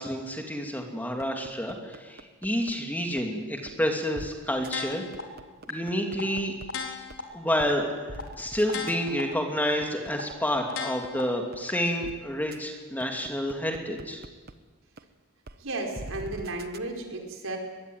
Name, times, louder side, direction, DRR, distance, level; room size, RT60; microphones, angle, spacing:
voice 1, 0.0-5.0 5.7-6.5 7.3-14.2, equal, 10° left, 2 dB, 2.8 m, -29 dB
sound 1, 1.2-2.7 3.2-3.3 3.7-3.8 4.1-4.3 4.6-4.7 5.1-6.7 7.1-7.2 7.6-7.7 8.1-10.6 11.0-11.1 11.5-11.6 12.0-12.1 12.5-12.6 13.0-14.5 15.0-15.1 15.5-15.6 15.9-16.8, right 2 dB, 45° right, 1.1 m, -42 dB
sound 2, 4.7-5.2 5.7-5.8 6.2-6.3 6.7-7.2 7.7-7.8 8.2-8.3 8.7-9.2 9.7-9.8 10.2-10.3 10.7-11.2 11.7-11.8, left 5 dB, 75° left, 3.9 m, -34 dB
voice 2, 15.6-17.6, right 2 dB, 70° right, 3 dB, 4.9 m, -34 dB
23.0 x 21.5 x 9.6 m, 1.3 s
head